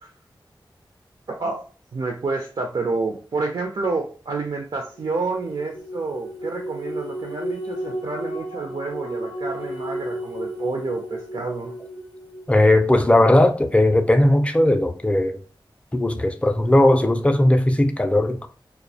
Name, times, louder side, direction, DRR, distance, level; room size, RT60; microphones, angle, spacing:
voice 1, 1.9-11.7, right 3 dB, 60° right, 0.4 m, -29 dB
sound 1, 5.0-12.8, right 1 dB, 85° left, 0.5 m, -33 dB
voice 2, 12.5-15.4 15.9-18.5, left 1 dB, 15° left, 0.3 m, -18 dB
2.3 x 2.0 x 2.6 m
cardioid pair, 50°, 9 cm